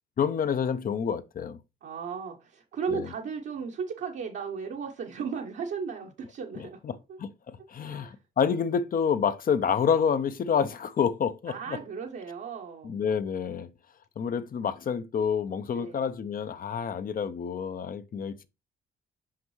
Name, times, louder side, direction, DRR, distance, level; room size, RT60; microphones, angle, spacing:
voice 1, 0.2-1.6 2.9-3.0 7.2-11.8 12.8-13.7 14.2-18.5, left 7 dB, 45° left, 0.7 m, -28 dB
voice 2, 1.8-6.8 7.1-7.2 7.8-8.2 11.5-13.0 15.7-16.0, right 6 dB, 65° right, 1.0 m, -35 dB
5.8 x 5.3 x 3.1 m
cardioid pair, 90°, 20 cm